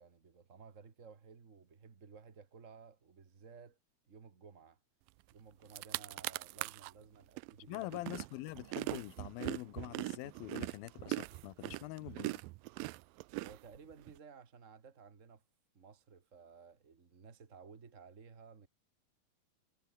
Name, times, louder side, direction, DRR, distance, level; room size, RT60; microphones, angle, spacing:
voice 1, 0.0-3.8 4.1-4.8 5.3-8.0 8.3-8.4 13.4-15.4 15.7-18.7, right 5 dB, 45° right, 1.0 m, -56 dB
sound 1, 5.3-5.4 5.6-6.9 7.4-14.1, right 22 dB, 80° right, 2.2 m, -41 dB
voice 2, 7.7-12.4, left 18 dB, 90° left, 2.6 m, -44 dB
omnidirectional pair, 4.2 m